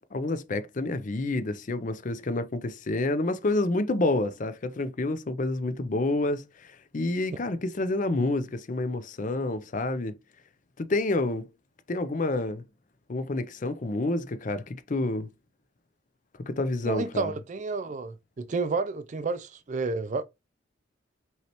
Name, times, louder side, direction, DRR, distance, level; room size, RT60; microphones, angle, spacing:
voice 1, 0.1-10.1 10.8-11.5 11.9-12.6 13.1-15.3 16.5-17.3, left 2 dB, 40° left, 0.5 m, -28 dB
voice 2, 16.8-20.2, right 4 dB, 40° right, 0.4 m, -30 dB
5.6 x 3.1 x 2.9 m
head